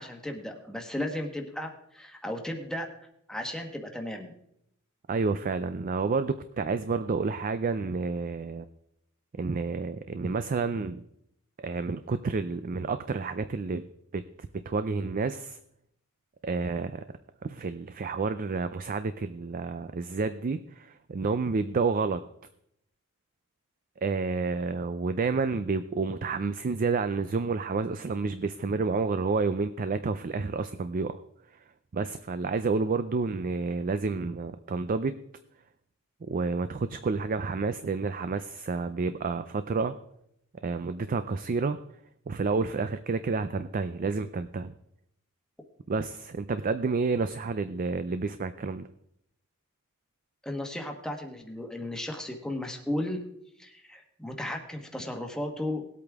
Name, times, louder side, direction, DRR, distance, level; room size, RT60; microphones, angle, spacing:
voice 1, 0.0-2.9 3.3-4.3 50.4-53.3 53.6-55.8, left 1 dB, 5° left, 2 dB, 1.2 m, -35 dB
voice 2, 5.1-8.6 9.4-11.0 11.6-13.8 14.1-15.6 16.4-17.0 17.4-22.2 24.0-31.2 31.9-35.1 36.3-39.9 40.6-41.8 42.3-44.7 45.9-48.9, right 4 dB, 40° right, 11 dB, 0.4 m, -30 dB
19.0 x 8.4 x 3.5 m, 0.76 s
head